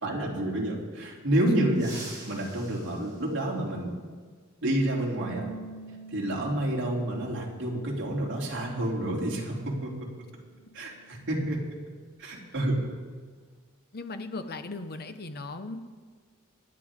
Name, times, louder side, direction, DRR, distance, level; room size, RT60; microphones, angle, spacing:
voice 1, 0.0-2.0 2.2-4.0 4.6-5.4 6.1-10.1 10.7-11.6 12.2-12.8, right 1 dB, 60° right, -3 dB, 3.3 m, -29 dB
sound 1, 1.7-4.1 5.8-5.9 7.1-7.2 8.8-9.0 9.3-9.5 10.0-12.2 12.5-12.7 13.1-13.6, right 2 dB, 20° right, 3.8 m, -48 dB
Bass guitar, 5.2-11.5, right 3 dB, 60° left, 2.2 m, -49 dB
voice 2, 13.9-15.8, left 3 dB, 45° left, 8 dB, 0.9 m, -37 dB
27.0 x 9.9 x 3.7 m, 1.5 s
head